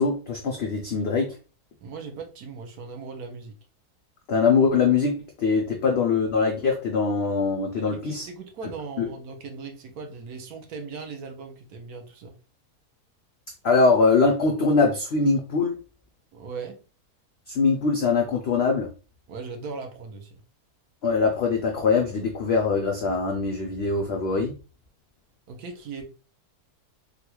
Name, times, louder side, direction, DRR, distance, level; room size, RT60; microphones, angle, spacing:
voice 1, 0.0-1.4 4.3-8.3 9.0-9.1 13.6-15.8 17.5-18.9 21.0-24.5, left 4 dB, 80° left, 2 dB, 0.5 m, -22 dB
voice 2, 1.8-3.6 5.6-5.7 8.1-12.3 16.3-16.8 19.3-20.4 25.5-26.0, right 4 dB, 70° right, 4 dB, 1.2 m, -38 dB
3.8 x 2.2 x 2.9 m, 0.35 s
omnidirectional pair, 1.7 m